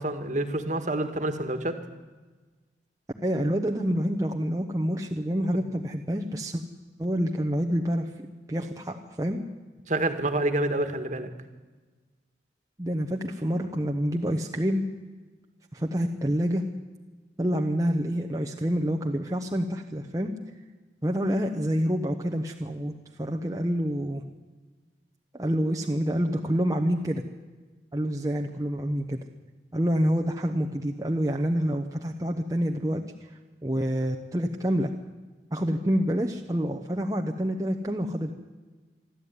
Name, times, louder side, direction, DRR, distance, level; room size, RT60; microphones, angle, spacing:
voice 1, 0.0-1.8 9.9-11.3, right 2 dB, 45° right, 8 dB, 1.8 m, -28 dB
voice 2, 3.2-6.6 7.0-8.1 8.5-9.4 12.8-14.8 15.7-16.6 17.4-20.3 21.0-22.9 23.2-24.2 25.3-27.2 27.9-29.2 29.7-34.9 35.5-38.3, equal, 20° right, 1 dB, 1.0 m, -27 dB
24.5 x 13.0 x 9.6 m, 1.3 s
head